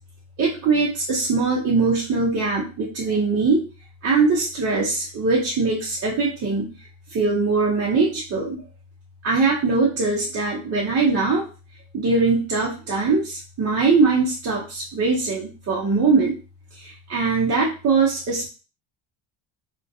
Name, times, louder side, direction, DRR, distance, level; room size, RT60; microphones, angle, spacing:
voice 1, 0.4-3.6 4.0-6.7 7.1-8.6 9.2-11.4 11.9-16.4 16.8-18.5, right 4 dB, 35° right, -5 dB, 0.6 m, -21 dB
2.5 x 2.2 x 2.5 m, 0.34 s
cardioid pair, 155°, 46 cm